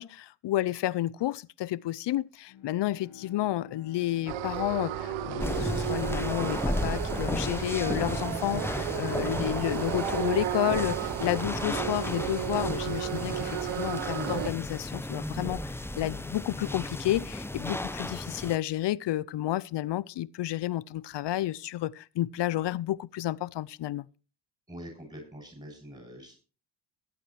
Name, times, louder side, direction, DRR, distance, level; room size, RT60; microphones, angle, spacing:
voice 1, 0.0-24.1, left 14 dB, 55° left, 0.7 m, -31 dB
Bowed string instrument, 2.5-7.1, left 6 dB, 75° left, 2.4 m, -49 dB
sound 1, 4.3-14.5, right 13 dB, 70° right, 0.9 m, -33 dB
sound 2, 5.4-18.6, left 1 dB, 5° left, 0.9 m, -34 dB
voice 2, 24.7-26.4, equal, 15° right, 7.1 m, -45 dB
22.5 x 8.7 x 3.2 m
hypercardioid pair, 45°, 49 cm